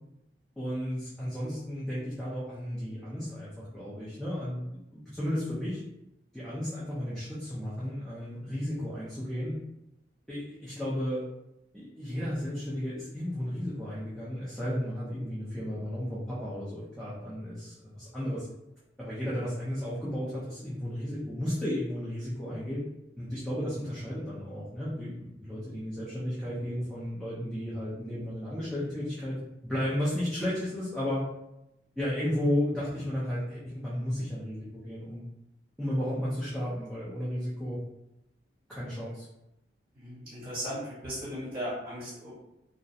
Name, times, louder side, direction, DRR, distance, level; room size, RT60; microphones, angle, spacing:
voice 1, 0.6-5.8 6.3-9.6 10.3-11.2 11.7-18.5 19.0-22.8 23.2-29.4 29.6-31.3 32.0-35.2 35.8-37.8 38.7-39.3, equal, ahead, -10 dB, 0.5 m, -33 dB
voice 2, 39.9-42.3, equal, 30° right, -9 dB, 0.8 m, -37 dB
2.4 x 2.0 x 2.6 m, 0.87 s
head